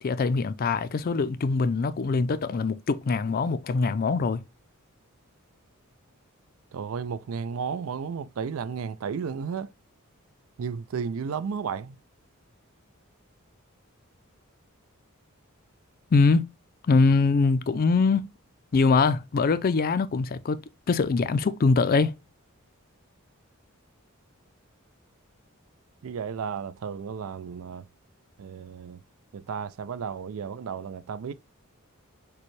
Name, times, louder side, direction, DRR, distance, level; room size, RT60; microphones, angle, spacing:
voice 1, 0.0-4.4 16.1-16.5 16.9-18.2 18.7-20.6 20.9-22.1, left 4 dB, 45° left, 0.4 m, -23 dB
voice 2, 6.7-9.7 10.6-12.0 26.0-27.9 28.4-29.0 29.3-31.3, right 6 dB, 70° right, 0.4 m, -33 dB
6.7 x 2.2 x 3.0 m
head